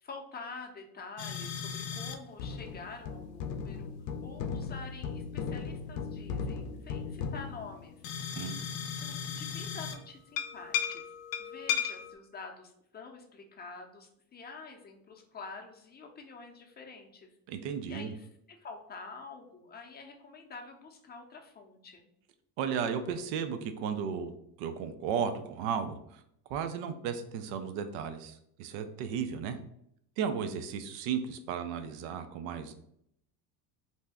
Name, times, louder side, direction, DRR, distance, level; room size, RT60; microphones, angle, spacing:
voice 1, 0.0-8.0 8.8-11.0 11.4-17.3 17.9-22.1, left 4 dB, 20° left, 2 dB, 0.5 m, -47 dB
sound 1, 1.2-2.1 2.4-10.0 10.4-12.1, left 7 dB, 70° left, 0.5 m, -36 dB
voice 2, 17.5-18.1 22.6-24.3 24.6-26.2 26.5-29.6 30.2-32.7, right 7 dB, 80° right, 9 dB, 0.5 m, -34 dB
2.7 x 2.2 x 3.4 m, 0.73 s
supercardioid pair, 90°, 47 cm